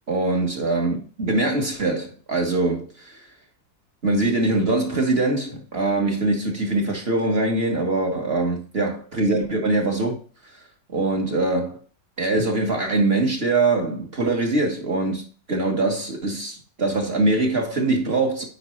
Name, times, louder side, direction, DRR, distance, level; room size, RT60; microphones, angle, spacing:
voice 1, 0.1-3.2 4.0-10.2 10.9-11.8 12.2-18.4, right 2 dB, 35° right, 1.5 m, -23 dB
8.9 x 4.9 x 3.2 m
omnidirectional pair, 2.1 m